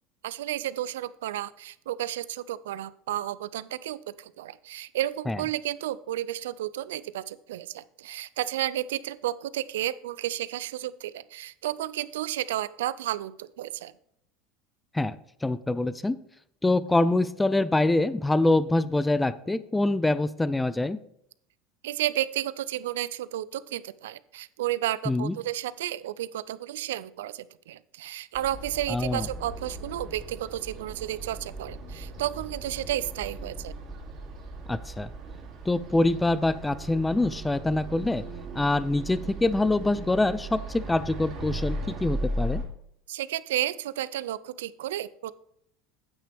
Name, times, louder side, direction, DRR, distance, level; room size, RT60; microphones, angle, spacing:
voice 1, 0.2-13.9 21.8-33.7 43.1-45.3, right 13 dB, 90° right, 17 dB, 0.4 m, -32 dB
voice 2, 15.4-16.2 16.6-21.0 25.1-25.3 28.9-29.3 34.7-35.1 35.6-38.2 38.5-42.6, left 2 dB, 10° left, 16 dB, 0.4 m, -25 dB
sound 1, 28.3-42.7, right 2 dB, 45° right, 2.8 m, -37 dB
9.1 x 8.5 x 3.5 m, 0.73 s
supercardioid pair, 105°, 0 cm